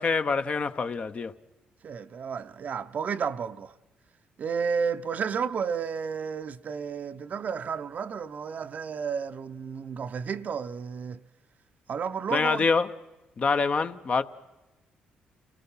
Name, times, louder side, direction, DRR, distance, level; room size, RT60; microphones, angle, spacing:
voice 1, 0.0-1.3 12.3-12.9 13.4-14.2, left 4 dB, 45° left, 0.9 m, -25 dB
voice 2, 1.8-3.8 4.4-11.2 11.9-12.7, right 6 dB, 55° right, 0.7 m, -32 dB
29.0 x 18.0 x 5.6 m
supercardioid pair, 70°, 3 cm